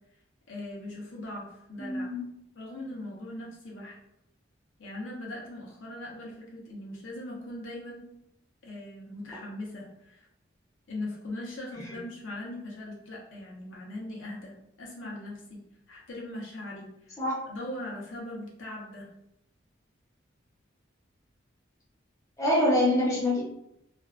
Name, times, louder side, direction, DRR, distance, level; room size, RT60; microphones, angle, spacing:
voice 1, 0.5-2.1 2.6-4.0 4.8-8.1 8.6-10.3 10.9-15.6 15.9-17.2 17.5-19.1, left 1 dB, 80° left, -4 dB, 0.7 m, -40 dB
voice 2, 1.8-2.2 17.2-17.4 22.4-23.4, left 1 dB, 15° left, -6 dB, 0.7 m, -25 dB
2.5 x 2.1 x 2.4 m, 0.79 s
head